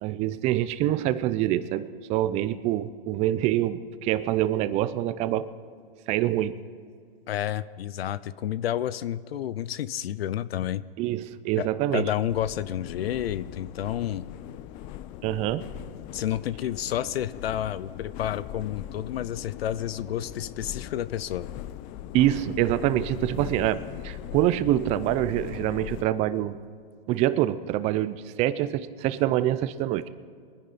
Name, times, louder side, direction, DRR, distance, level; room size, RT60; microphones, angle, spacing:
voice 1, 0.0-5.5 6.1-6.6 11.0-12.1 15.2-15.6 22.1-26.6 27.1-30.0, right 13 dB, 25° right, 15 dB, 0.4 m, -25 dB
voice 2, 7.3-10.8 11.6-14.3 16.1-21.5, left 11 dB, 80° left, 17 dB, 0.6 m, -30 dB
sound 1, 12.3-26.0, left 12 dB, 30° left, 0.5 m, -40 dB
22.5 x 10.0 x 4.1 m, 2.1 s
hypercardioid pair, 135°, 30 cm